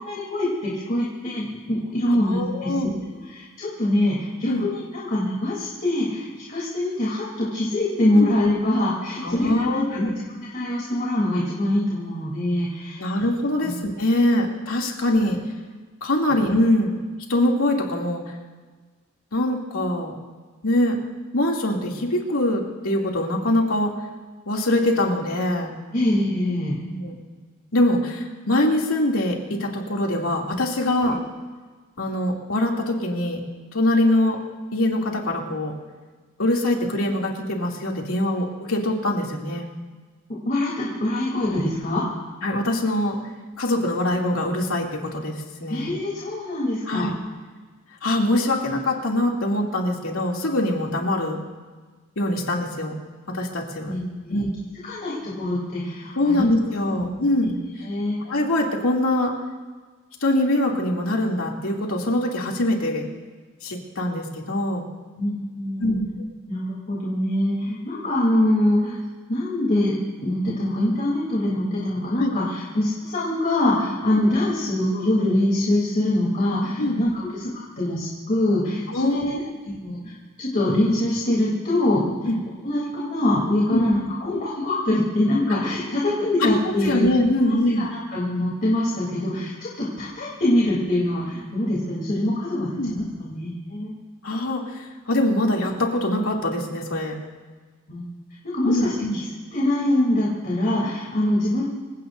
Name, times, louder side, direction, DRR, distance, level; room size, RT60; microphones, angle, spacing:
voice 1, 0.0-2.9 3.3-13.0 16.3-16.4 25.9-26.8 31.0-31.1 40.4-42.1 45.7-47.1 53.8-54.4 54.8-56.5 56.9-57.0 57.4-57.5 57.8-58.2 65.2-66.0 66.5-69.0 69.3-80.1 80.4-82.3 82.6-87.0 87.5-93.9 97.9-98.0 98.5-99.2 99.5-101.6, left 1 dB, 40° left, -6 dB, 3.3 m, -24 dB
voice 2, 2.1-2.9 4.4-4.7 8.2-8.3 9.2-10.0 13.0-15.4 16.0-16.9 17.3-18.2 19.3-20.2 20.6-21.0 21.3-23.9 24.5-25.7 26.8-27.2 27.7-31.2 32.0-33.4 33.7-34.4 34.7-35.7 36.4-39.7 42.4-43.2 43.6-45.9 46.9-47.1 48.0-51.4 52.2-52.9 53.3-53.9 54.3-54.5 56.2-57.5 58.2-59.3 60.2-63.1 63.6-64.8 65.8-66.3 72.2-72.3 74.1-74.2 76.8-77.0 78.9-79.4 82.3-82.4 83.7-83.8 86.4-86.6 86.8-87.9 92.8-92.9 94.2-97.2 98.6-99.2, left 1 dB, 75° left, -1 dB, 2.7 m, -23 dB
27.0 x 16.5 x 2.7 m, 1.4 s
head